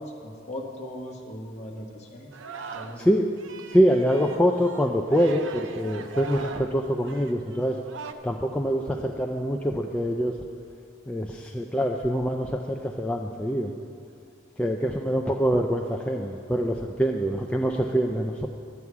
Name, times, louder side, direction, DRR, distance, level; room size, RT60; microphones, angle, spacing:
voice 1, 0.0-2.3 2.7-3.0, left 1 dB, 35° left, 0 dB, 1.2 m, -38 dB
Singing, 2.3-3.1 3.4-8.1, right 5 dB, 80° right, 0.5 m, -40 dB
voice 2, 3.0-3.3 3.7-7.8 8.2-10.4 11.1-13.7 14.6-18.5, equal, 5° left, 1 dB, 0.3 m, -25 dB
11.0 x 8.2 x 4.7 m, 2.3 s
head